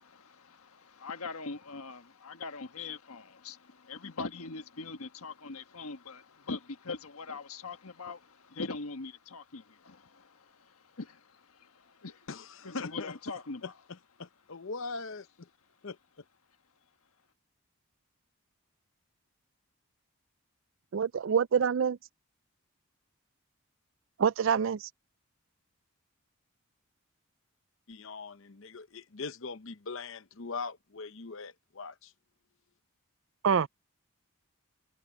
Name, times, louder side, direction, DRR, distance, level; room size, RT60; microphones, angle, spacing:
voice 1, 0.0-12.3 12.6-13.7, left 3 dB, 80° left, 1.5 m, -42 dB
voice 2, 12.3-13.1 14.2-15.5 15.8-16.0 27.9-32.1, left 4 dB, 60° left, 0.8 m, -41 dB
voice 3, 20.9-22.0 24.2-24.9 33.4-33.7, right 7 dB, 55° right, 0.4 m, -26 dB
head